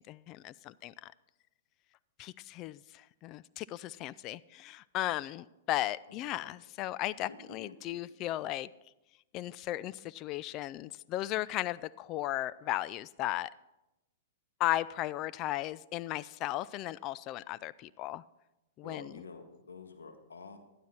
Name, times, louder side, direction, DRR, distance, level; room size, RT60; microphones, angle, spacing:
voice 1, 0.1-1.1 2.2-8.7 9.3-13.5 14.6-18.2 18.8-19.2, left 15 dB, 35° left, 18 dB, 0.4 m, -36 dB
voice 2, 6.1-6.5 7.2-8.0 17.4-17.5 18.8-20.6, left 4 dB, 85° left, 6 dB, 1.6 m, -49 dB
12.0 x 11.5 x 4.4 m, 0.95 s
hypercardioid pair, 115°, 0 cm